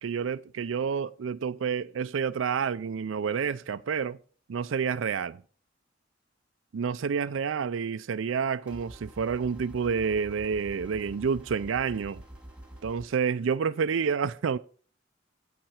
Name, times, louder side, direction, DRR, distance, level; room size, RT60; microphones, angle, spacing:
voice 1, 0.0-4.2 4.5-5.4 6.7-12.2 12.8-14.6, right 6 dB, 85° right, 0.4 m, -29 dB
sound 1, 8.7-13.1, right 1 dB, 5° right, 2.3 m, -47 dB
16.5 x 5.8 x 4.3 m
head